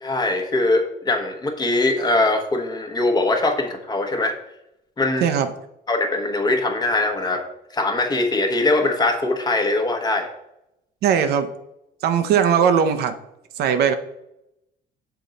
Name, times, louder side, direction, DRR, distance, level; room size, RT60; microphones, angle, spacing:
voice 1, 0.0-4.4 5.0-5.3 5.9-7.4 7.7-10.3, left 2 dB, 25° left, 4 dB, 1.0 m, -21 dB
voice 2, 11.0-11.5 12.0-13.2 13.6-13.9, right 7 dB, 70° right, 8 dB, 0.6 m, -19 dB
7.0 x 3.8 x 3.9 m, 0.84 s
cardioid pair, 110°, 17 cm